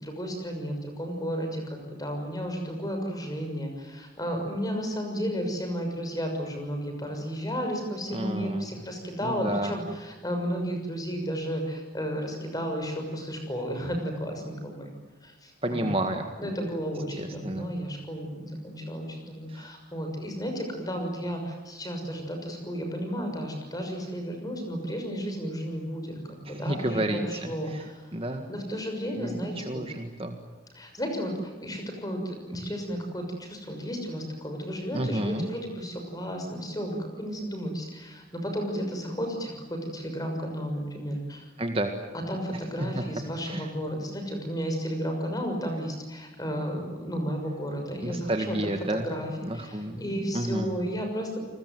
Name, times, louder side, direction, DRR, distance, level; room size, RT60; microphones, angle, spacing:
voice 1, 0.0-14.9 15.2-16.0 16.4-28.0 28.5-29.8 30.7-41.4 42.1-51.4, equal, 20° left, 4 dB, 6.3 m, -33 dB
voice 2, 8.1-8.7 9.2-9.7 15.6-16.5 17.2-17.7 19.5-19.7 26.5-27.8 28.1-28.5 29.2-30.4 34.9-35.5 41.6-41.9 42.8-43.0 43.5-43.7 48.0-49.1 49.4-50.0 50.3-50.7, right 1 dB, 30° right, 5 dB, 1.9 m, -31 dB
29.5 x 20.5 x 9.3 m, 1.2 s
head